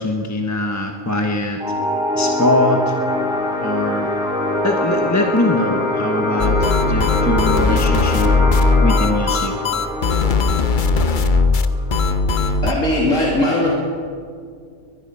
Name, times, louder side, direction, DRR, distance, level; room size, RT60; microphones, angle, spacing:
voice 1, 0.0-1.6 2.1-2.9 3.6-4.1 4.6-8.3 8.8-9.6, left 1 dB, 15° left, 3 dB, 1.3 m, -22 dB
sound 1, 1.6-12.7, left 1 dB, 5° right, 2.7 m, -23 dB
sound 2, 6.4-12.7, left 3 dB, 45° left, 1.0 m, -18 dB
voice 2, 12.4-13.7, left 1 dB, 80° left, -4 dB, 3.5 m, -19 dB
22.5 x 20.0 x 5.7 m, 2.1 s
omnidirectional pair, 1.3 m